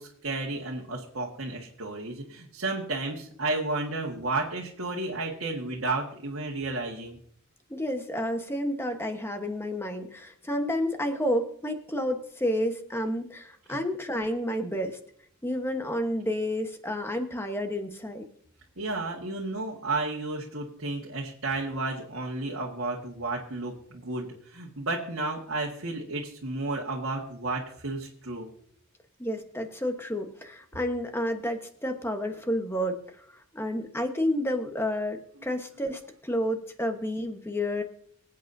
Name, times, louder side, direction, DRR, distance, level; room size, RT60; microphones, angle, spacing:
voice 1, 0.0-7.2 13.7-13.8 18.8-28.5, right 2 dB, 75° right, -3 dB, 1.6 m, -32 dB
voice 2, 7.7-15.0 15.4-18.2 29.2-33.0 33.5-37.8, equal, 10° left, 5 dB, 1.1 m, -30 dB
25.0 x 8.4 x 2.7 m, 0.63 s
head